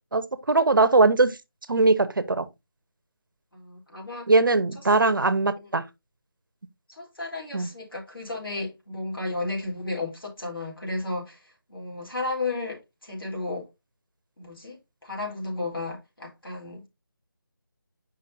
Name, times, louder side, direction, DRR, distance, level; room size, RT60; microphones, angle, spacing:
voice 1, 0.1-1.4 1.7-2.5 4.3-5.8 7.5-7.7, right 3 dB, 70° right, 0.9 m, -20 dB
voice 2, 3.5-4.3 5.6-5.7 6.9-11.4 11.7-13.6 14.4-14.8 15.0-16.9, left 2 dB, 80° left, 3.4 m, -33 dB
8.3 x 5.5 x 2.6 m
figure-of-eight pair, 165°, 12 cm